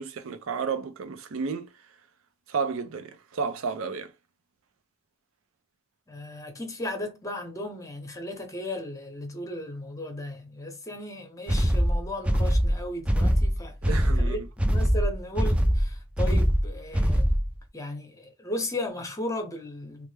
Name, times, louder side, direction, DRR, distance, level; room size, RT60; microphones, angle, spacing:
voice 1, 0.0-1.7 2.5-4.1 13.8-14.5, right 5 dB, 80° right, 0.5 m, -32 dB
voice 2, 6.1-13.8 14.2-14.4 14.6-17.4 17.7-20.1, left 1 dB, 15° left, 0.8 m, -35 dB
sound 1, 11.5-17.5, equal, 5° right, 0.3 m, -23 dB
3.2 x 2.0 x 3.2 m
head